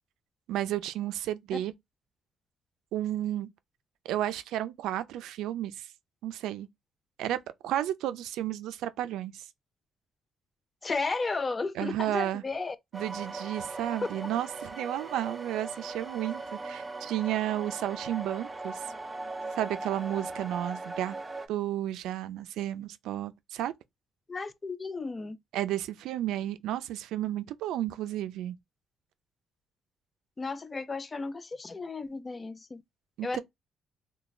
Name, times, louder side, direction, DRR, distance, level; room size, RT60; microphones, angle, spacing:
voice 1, 0.5-1.7 2.9-3.5 4.1-5.9 6.2-6.7 7.2-7.4 7.6-9.5 11.7-12.4 12.9-18.9 19.6-21.2 21.5-23.7 25.5-28.6 33.2-33.4, right 12 dB, 90° right, 0.3 m, -32 dB
voice 2, 10.8-12.8 24.3-25.4 30.4-32.8 33.2-33.4, left 3 dB, 30° left, 0.4 m, -34 dB
sound 1, 12.9-21.5, right 3 dB, 25° right, 0.5 m, -39 dB
3.0 x 2.2 x 2.3 m
cardioid pair, 90°, 0 cm